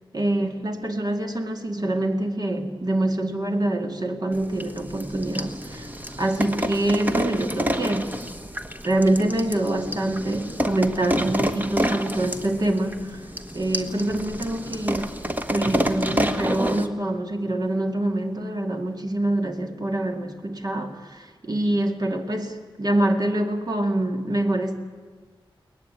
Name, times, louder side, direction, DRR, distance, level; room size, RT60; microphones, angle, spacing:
voice 1, 0.1-5.9 6.2-8.1 8.8-13.2 13.5-15.2 15.5-24.8, right 1 dB, 45° right, 4 dB, 2.2 m, -25 dB
sound 1, 4.3-16.9, equal, 20° right, 1.4 m, -29 dB
22.5 x 19.0 x 10.0 m, 1.5 s
wide cardioid pair, 75°, 9 cm